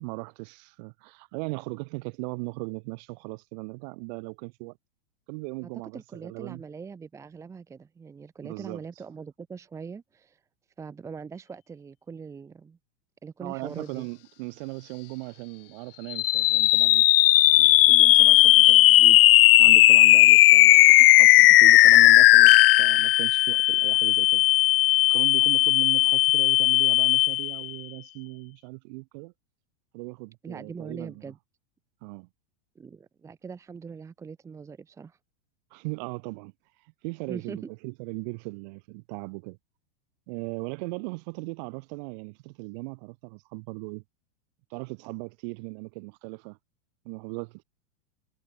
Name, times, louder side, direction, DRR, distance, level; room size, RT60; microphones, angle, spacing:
voice 1, 0.0-4.8 5.3-6.6 8.4-8.8 13.4-17.1 17.6-19.2 19.6-24.4 25.1-29.3 29.9-31.2 32.0-32.3 35.7-36.5 37.0-39.6 40.3-44.0 44.7-46.6 47.1-47.6, right 30 dB, 40° right, 3.6 m, -38 dB
voice 2, 5.6-10.4 10.8-12.8 13.2-14.1 30.4-31.4 32.7-35.2 37.3-37.6, right 5 dB, 10° right, 1.4 m, -41 dB
sound 1, 16.1-27.6, left 17 dB, 55° left, 0.7 m, -16 dB
supercardioid pair, 175°, 34 cm